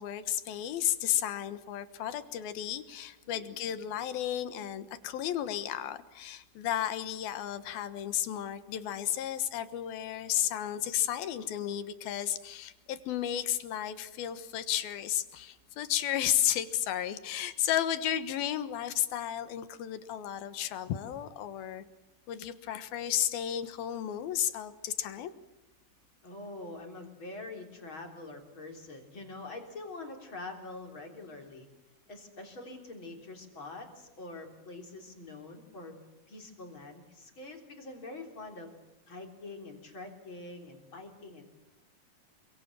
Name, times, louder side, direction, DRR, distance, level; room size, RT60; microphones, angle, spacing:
voice 1, 0.0-21.8 22.3-25.3, left 11 dB, 80° left, 11 dB, 3.2 m, -33 dB
voice 2, 3.2-3.7 26.2-31.7 32.1-35.9 36.3-38.7 39.1-41.5, left 2 dB, 35° left, 2 dB, 4.2 m, -45 dB
27.5 x 24.0 x 7.5 m, 0.93 s
omnidirectional pair, 4.3 m